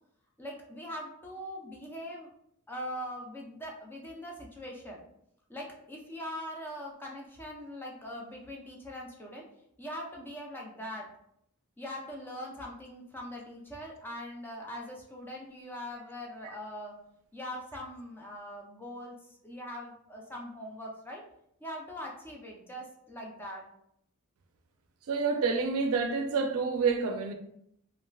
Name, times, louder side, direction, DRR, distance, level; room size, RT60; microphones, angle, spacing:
voice 1, 0.4-2.3 2.7-5.0 5.5-9.4 9.8-11.1 11.8-16.9 17.3-21.2 21.6-23.6, equal, 10° left, 0.4 m, -42 dB
voice 2, 25.1-27.3, right 5 dB, 75° right, 0.4 m, -28 dB
3.3 x 2.4 x 2.2 m
head